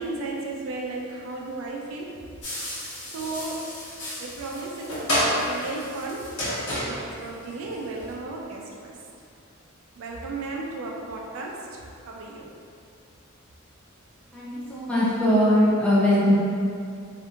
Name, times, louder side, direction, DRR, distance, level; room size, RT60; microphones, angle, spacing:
voice 1, 0.0-2.2 3.1-3.7 4.2-8.9 10.0-11.6 12.1-12.5, right 3 dB, 70° right, -1 dB, 0.3 m, -34 dB
sound 1, 2.4-8.1, equal, 85° left, 0.9 m, -30 dB
voice 2, 14.3-16.4, left 1 dB, 5° left, -10 dB, 0.6 m, -20 dB
2.6 x 2.5 x 2.4 m, 2.5 s
head